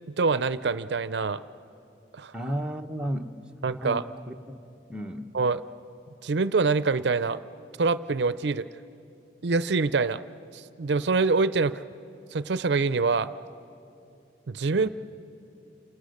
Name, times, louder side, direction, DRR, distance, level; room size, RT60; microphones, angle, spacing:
voice 1, 0.2-1.4 2.2-2.3 3.6-4.0 5.3-5.6 6.2-7.4 7.8-8.7 9.4-10.2 10.5-11.8 12.3-13.3 14.5-14.9, right 4 dB, 70° right, 14 dB, 0.5 m, -25 dB
voice 2, 2.3-4.3 4.9-5.3 14.7-14.9, equal, 5° right, 2 dB, 0.9 m, -34 dB
29.5 x 27.5 x 6.6 m, 2.7 s
head